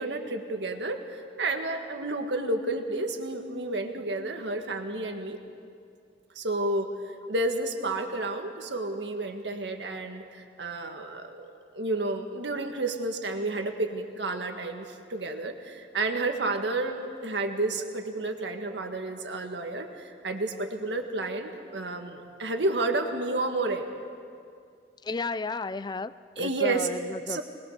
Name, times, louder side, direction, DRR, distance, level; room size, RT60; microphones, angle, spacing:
voice 1, 0.0-5.4 6.3-6.9 7.3-23.9 26.4-26.9 27.3-27.4, right 2 dB, 80° right, 5 dB, 1.7 m, -31 dB
voice 2, 25.0-27.4, left 3 dB, 25° left, 15 dB, 0.4 m, -33 dB
21.5 x 20.5 x 6.7 m, 2.3 s
head